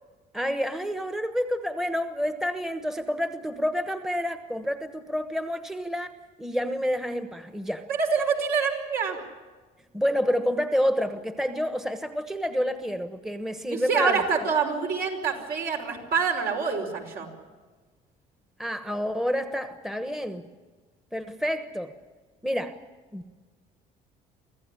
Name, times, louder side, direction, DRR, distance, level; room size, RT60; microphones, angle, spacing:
voice 1, 0.3-6.1 6.4-7.8 9.9-14.2 18.6-20.5 21.1-21.9 22.4-22.8 23.1-23.3, equal, ahead, 9 dB, 1.2 m, -28 dB
voice 2, 7.9-9.2 13.7-17.3, right 5 dB, 65° right, 2 dB, 5.1 m, -26 dB
25.0 x 15.0 x 9.9 m, 1.4 s
cardioid pair, 110°, 17 cm